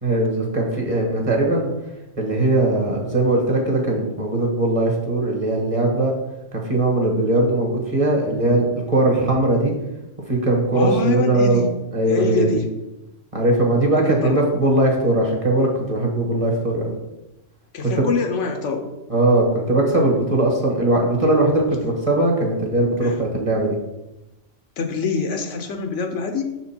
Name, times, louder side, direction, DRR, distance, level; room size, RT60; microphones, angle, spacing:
voice 1, 0.0-1.7 2.2-6.1 6.5-9.7 10.3-11.6 11.9-12.6 13.3-16.9 17.8-18.0 19.1-23.8, right 2 dB, 25° right, -1 dB, 1.3 m, -20 dB
voice 2, 10.7-11.7 12.1-12.7 13.9-14.4 17.7-18.9 23.0-23.2 24.8-26.4, left 4 dB, 70° left, 5 dB, 1.0 m, -25 dB
6.2 x 4.4 x 4.3 m, 0.96 s
omnidirectional pair, 1.3 m